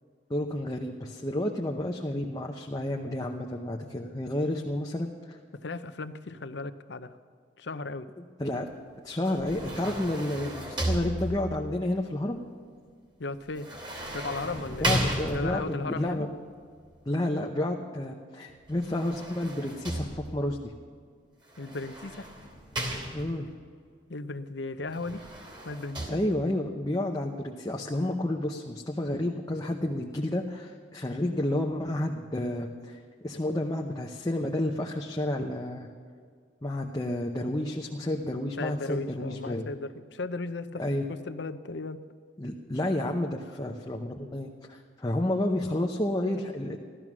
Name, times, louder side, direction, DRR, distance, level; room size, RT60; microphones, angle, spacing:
voice 1, 0.3-5.4 8.4-8.7 9.0-12.4 14.8-16.3 17.1-20.7 23.1-23.5 26.1-33.0 33.2-35.9 36.6-39.7 40.8-41.0 42.4-46.8, left 1 dB, 20° left, 0 dB, 0.8 m, -30 dB
voice 2, 5.5-7.2 7.6-8.1 13.2-13.7 14.1-14.9 15.3-16.3 21.6-22.3 24.1-25.2 25.6-26.2 38.6-40.8 41.1-42.0, left 3 dB, 70° left, 11 dB, 0.7 m, -36 dB
sound 1, 9.2-11.7 13.6-15.8 18.7-20.5 21.5-23.5 24.9-26.1, right 1 dB, 25° right, 3.0 m, -34 dB
16.0 x 12.5 x 6.1 m, 2.1 s
head